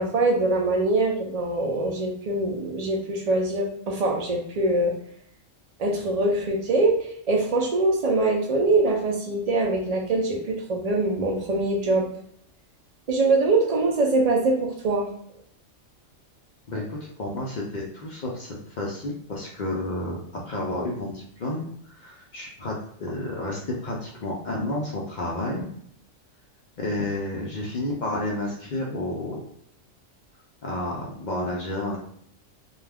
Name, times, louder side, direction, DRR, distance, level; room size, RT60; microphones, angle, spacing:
voice 1, 0.0-4.9 5.8-12.1 13.1-15.1, right 2 dB, 60° right, 0 dB, 0.4 m, -23 dB
voice 2, 16.7-20.2 20.5-21.7 22.0-22.7 23.0-25.7 26.8-29.5 30.6-32.0, left 1 dB, 60° left, -2 dB, 0.5 m, -30 dB
2.3 x 2.2 x 3.3 m, 0.65 s
omnidirectional pair, 1.3 m